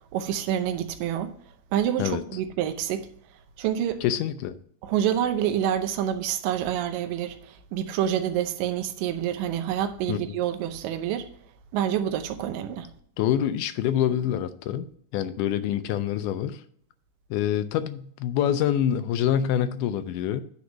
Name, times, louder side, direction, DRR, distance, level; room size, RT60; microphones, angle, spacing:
voice 1, 0.1-1.3 1.7-3.1 3.6-4.0 4.8-11.3 11.7-12.9, right 10 dB, 80° right, 2.4 m, -27 dB
voice 2, 4.0-4.5 10.1-10.4 13.2-14.9 15.1-16.6 17.3-20.4, left 10 dB, 80° left, 1.9 m, -26 dB
9.5 x 4.0 x 6.1 m
omnidirectional pair, 4.0 m